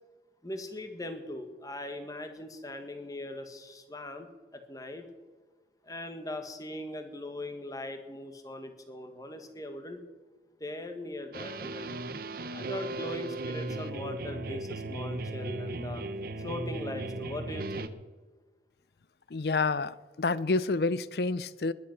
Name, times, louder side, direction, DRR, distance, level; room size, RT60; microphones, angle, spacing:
voice 1, 0.4-5.1 5.8-10.0 10.6-12.0 12.5-16.0 16.4-17.9, left 1 dB, 20° left, 1.6 m, -40 dB
sound 1, 11.3-17.9, right 2 dB, 55° right, 0.8 m, -36 dB
voice 2, 19.3-21.7, left 3 dB, 60° left, 0.6 m, -29 dB
20.0 x 10.5 x 6.0 m
head